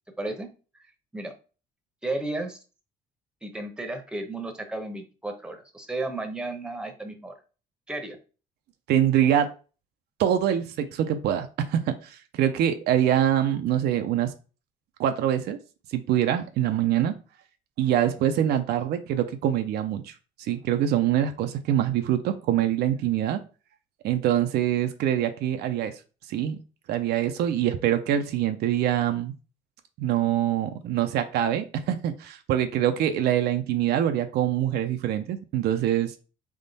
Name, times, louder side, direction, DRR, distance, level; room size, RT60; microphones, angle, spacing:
voice 1, 0.2-0.5 1.1-1.3 2.0-2.6 3.4-7.3 7.9-8.2, right 2 dB, 5° right, 5 dB, 0.9 m, -33 dB
voice 2, 8.9-9.5 10.2-14.3 15.0-15.6 15.9-17.1 17.8-20.1 20.4-23.4 24.0-25.9 26.3-26.6 26.9-29.3 30.0-36.1, right 11 dB, 75° right, 8 dB, 0.5 m, -24 dB
3.6 x 3.1 x 4.0 m, 0.35 s
cardioid pair, 110°, 17 cm